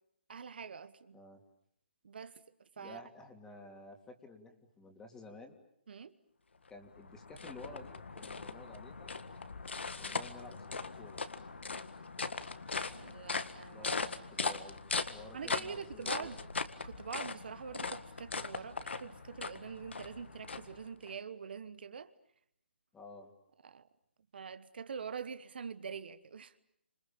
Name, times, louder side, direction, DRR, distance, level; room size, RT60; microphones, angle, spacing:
voice 1, 0.3-1.2 2.0-2.4 2.8-3.0 5.9-6.1 13.0-13.9 15.3-16.4 16.8-22.1 23.6-23.9 24.3-26.5, right 6 dB, 60° right, 1.2 m, -45 dB
voice 2, 2.8-5.6 6.7-9.1 10.0-11.2 13.7-14.8 15.1-16.4 22.9-23.3, left 2 dB, 10° left, 3.0 m, -52 dB
sound 1, 6.7-21.1, left 4 dB, 80° left, 1.8 m, -40 dB
29.0 x 27.0 x 7.2 m
hypercardioid pair, 150°, 6 cm